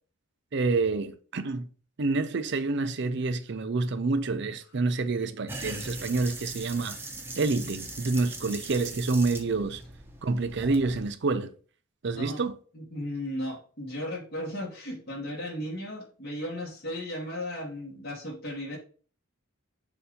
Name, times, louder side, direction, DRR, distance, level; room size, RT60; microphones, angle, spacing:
voice 1, 0.5-1.7 2.0-7.0 7.4-9.8 10.2-11.5 12.0-12.6, right 3 dB, 55° right, 0.5 m, -28 dB
sound 1, 5.5-11.1, right 2 dB, 10° right, 0.8 m, -40 dB
voice 2, 12.1-12.5 12.7-18.8, left 1 dB, 50° left, 1.8 m, -35 dB
6.9 x 2.7 x 5.1 m
head